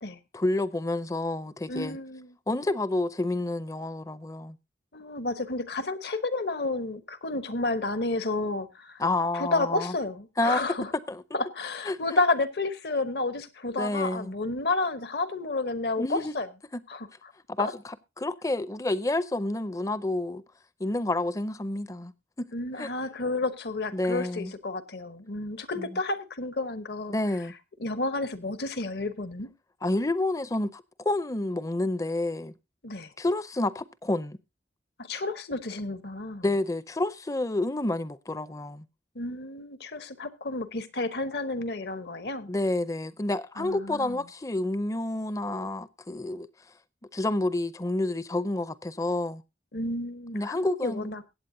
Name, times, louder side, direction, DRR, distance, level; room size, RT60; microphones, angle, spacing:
voice 1, 0.3-2.0 2.5-4.6 9.0-9.9 10.4-10.6 11.1-11.2 11.9-12.0 13.8-14.3 16.0-16.3 17.6-20.4 20.8-22.1 22.4-22.5 22.8-22.9 23.9-24.5 25.8-25.9 27.1-27.5 29.8-32.5 33.2-34.4 36.4-38.8 42.5-46.5 47.1-49.4 50.3-51.1, left 2 dB, 20° left, 0.5 m, -29 dB
voice 2, 1.7-2.3 4.9-9.0 9.3-10.9 11.3-16.5 16.9-17.1 17.6-17.7 22.5-27.2 27.8-29.5 32.8-33.1 35.0-36.4 39.1-42.5 43.6-44.2 49.7-51.2, left 2 dB, 65° left, 1.1 m, -31 dB
22.5 x 8.4 x 2.7 m
head